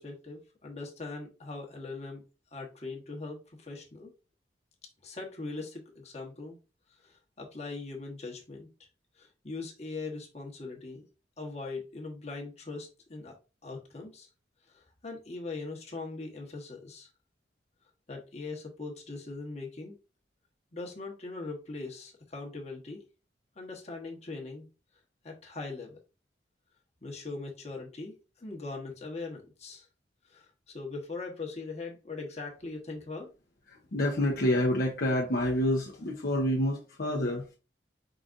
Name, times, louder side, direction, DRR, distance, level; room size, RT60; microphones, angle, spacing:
voice 1, 0.0-2.2 2.5-4.1 5.0-6.6 7.0-8.7 9.2-11.1 11.4-13.3 13.6-14.3 14.7-17.1 18.1-20.0 20.7-23.0 23.6-24.7 25.2-26.0 27.0-29.9 30.3-33.3, left 3 dB, 40° left, 1.2 m, -41 dB
voice 2, 33.7-37.5, left 1 dB, 60° left, 0.8 m, -28 dB
5.0 x 3.9 x 2.5 m
head